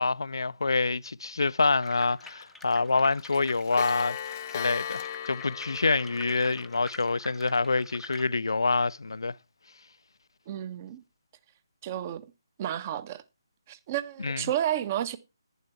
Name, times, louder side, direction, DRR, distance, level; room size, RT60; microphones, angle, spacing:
voice 1, 0.0-4.2 4.5-9.4 14.2-14.4, left 3 dB, 70° left, 0.5 m, -26 dB
sound 1, 1.8-8.2, left 2 dB, ahead, 0.8 m, -48 dB
Clock, 1.9-2.0 2.3-2.4 2.7-2.8 3.1-7.2, left 9 dB, 35° left, 0.9 m, -37 dB
voice 2, 10.5-11.0 11.8-12.2 12.6-13.2 13.7-15.2, right 11 dB, 30° right, 1.1 m, -31 dB
11.0 x 10.5 x 4.6 m
figure-of-eight pair, 145°, 2 cm